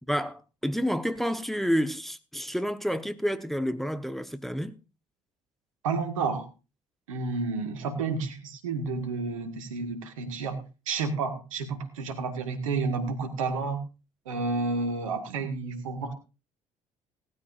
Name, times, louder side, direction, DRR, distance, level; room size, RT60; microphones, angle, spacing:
voice 1, 0.1-4.7, equal, ahead, 1.1 m, -29 dB
voice 2, 5.8-6.5 7.1-13.8 14.3-16.1, right 4 dB, 85° right, 1.8 m, -31 dB
18.5 x 13.0 x 2.5 m
hypercardioid pair, 50°, 17 cm